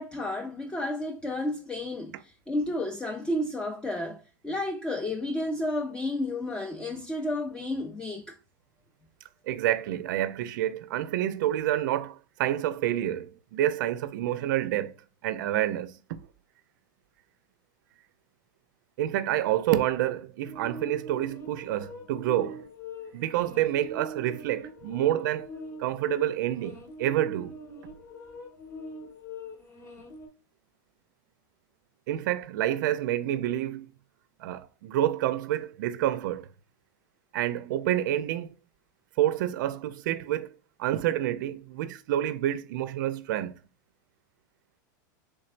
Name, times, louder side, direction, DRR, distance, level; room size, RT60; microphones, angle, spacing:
voice 1, 0.0-8.3, left 1 dB, 10° left, 0.4 m, -32 dB
voice 2, 9.5-14.9 15.2-16.2 19.0-22.6 23.1-25.5 25.8-27.6 32.1-33.9 34.4-36.5 37.3-38.5 39.2-40.5 40.8-43.6, right 12 dB, 75° right, 0.4 m, -28 dB
sound 1, 20.4-30.3, left 1 dB, 25° left, 0.9 m, -43 dB
3.3 x 3.2 x 2.5 m
supercardioid pair, 135°, 11 cm